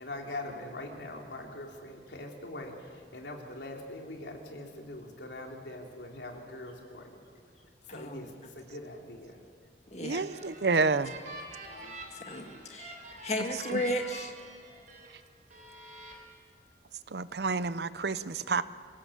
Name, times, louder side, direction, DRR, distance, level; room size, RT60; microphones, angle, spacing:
voice 1, 0.0-7.5 7.9-9.4 11.6-12.0, left 1 dB, 80° left, 1 dB, 3.3 m, -43 dB
voice 2, 7.9-8.3 9.9-10.2 12.1-14.3, left 1 dB, 40° left, 4 dB, 2.0 m, -34 dB
sound 1, 10.0-15.1 15.5-16.1, right 3 dB, 45° right, 4.3 m, -46 dB
voice 3, 10.0-11.1 17.1-18.6, right 4 dB, 65° right, 15 dB, 0.7 m, -29 dB
27.0 x 17.0 x 7.3 m, 2.1 s
head